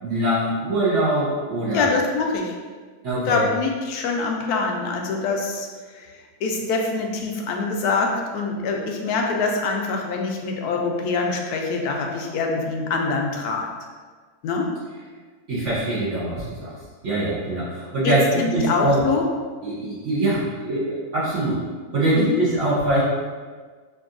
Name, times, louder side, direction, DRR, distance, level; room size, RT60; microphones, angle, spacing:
voice 1, 0.0-1.9 3.0-3.4 15.5-16.7 17.0-18.2 18.5-19.0 19.6-21.6 21.9-23.0, right 1 dB, 55° right, -10 dB, 1.1 m, -23 dB
voice 2, 1.7-2.5 3.3-5.7 5.9-6.1 6.4-13.7 14.4-14.7 18.0-19.2 22.1-22.4, left 4 dB, 80° left, 1 dB, 1.1 m, -24 dB
5.2 x 2.6 x 2.5 m, 1.5 s
omnidirectional pair, 1.6 m